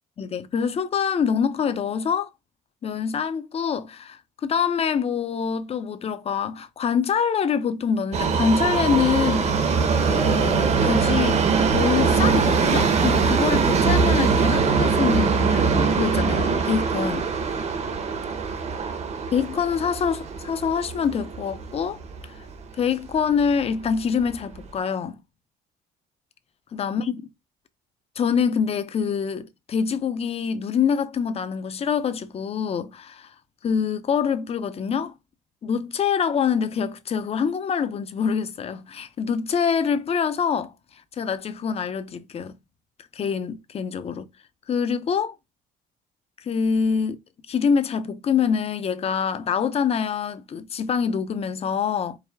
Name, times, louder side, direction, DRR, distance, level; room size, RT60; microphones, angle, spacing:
voice 1, 0.2-2.3 2.8-9.5 10.1-11.4 11.7-17.3 19.3-22.0 22.8-25.2 26.7-27.2 28.2-33.3 33.6-35.1 35.6-40.7 41.1-42.5 43.1-44.3 44.7-45.3 46.4-47.2 47.5-52.2, left 6 dB, 35° left, 0.6 m, -25 dB
Subway metro underground, 8.1-22.2 22.5-22.6 23.5-23.6 23.9-24.0 24.6-24.7, right 5 dB, 40° right, 0.9 m, -22 dB
4.7 x 2.2 x 3.4 m
cardioid pair, 110°, 17 cm